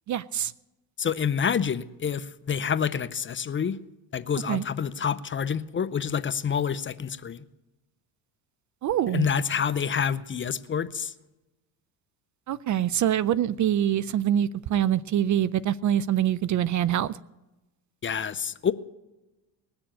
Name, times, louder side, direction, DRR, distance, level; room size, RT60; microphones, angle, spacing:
voice 1, 0.1-0.5 4.5-4.6 8.8-9.3 12.5-17.2, right 11 dB, 40° right, 0.4 m, -25 dB
voice 2, 1.0-3.8 4.1-7.4 9.1-11.1 18.0-18.7, left 7 dB, 25° left, 0.6 m, -27 dB
20.0 x 7.0 x 8.8 m
supercardioid pair, 95°, 46 cm